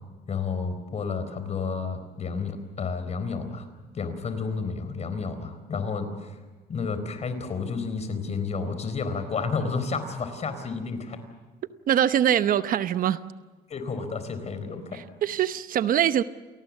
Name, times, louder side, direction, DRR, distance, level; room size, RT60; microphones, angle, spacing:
voice 1, 0.3-3.7 3.9-6.4 6.7-11.2 13.7-15.0, left 4 dB, 40° left, 4.2 m, -31 dB
voice 2, 11.9-13.2 15.2-16.2, right 10 dB, 55° right, 0.9 m, -23 dB
28.5 x 19.0 x 7.4 m
cardioid pair, 110°, 17 cm